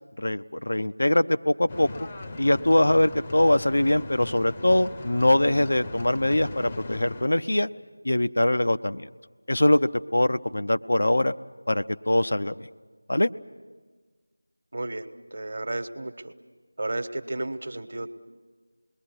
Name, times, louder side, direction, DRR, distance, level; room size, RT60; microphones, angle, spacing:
voice 1, 0.2-1.9 2.4-7.7 8.0-9.1 9.5-11.3 11.7-12.7 13.1-13.3, left 1 dB, 60° left, 10 dB, 0.7 m, -22 dB
sound 1, 1.7-7.3, left 2 dB, 20° left, 0.8 m, -39 dB
voice 2, 14.7-15.1 15.3-16.3 16.8-18.1, right 2 dB, 45° right, 10 dB, 1.2 m, -32 dB
28.0 x 21.5 x 7.9 m, 1.4 s
figure-of-eight pair, 170°, 0 cm